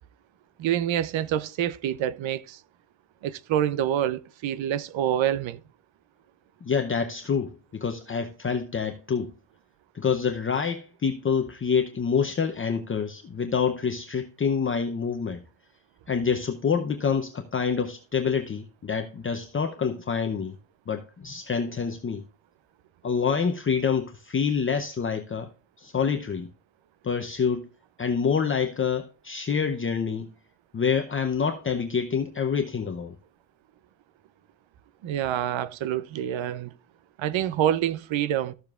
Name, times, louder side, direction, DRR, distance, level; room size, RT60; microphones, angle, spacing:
voice 1, 0.6-2.6 3.2-5.6 35.0-36.7 37.2-38.5, right 11 dB, 85° right, 0.7 m, -27 dB
voice 2, 6.6-9.3 9.9-15.4 16.1-20.5 20.9-22.3 23.0-25.5 25.8-26.5 27.0-27.7 28.0-30.3 30.7-33.1, left 6 dB, 30° left, 0.7 m, -27 dB
14.0 x 7.0 x 2.4 m
wide cardioid pair, 150°, 45 cm